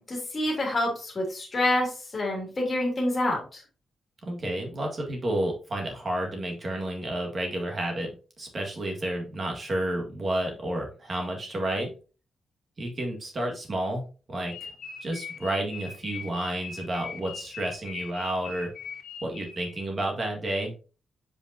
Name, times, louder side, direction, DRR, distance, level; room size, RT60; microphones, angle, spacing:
voice 1, 0.0-3.6, left 1 dB, 25° left, -2 dB, 2.7 m, -27 dB
voice 2, 4.2-8.1 8.4-11.9 12.8-14.0 14.3-14.7 15.0-18.7 19.2-20.7, right 1 dB, 30° right, 1 dB, 1.8 m, -31 dB
sound 1, 14.5-19.8, left 6 dB, 60° left, 1.8 m, -40 dB
7.7 x 5.1 x 2.7 m, 0.35 s
wide cardioid pair, 180°, 0 cm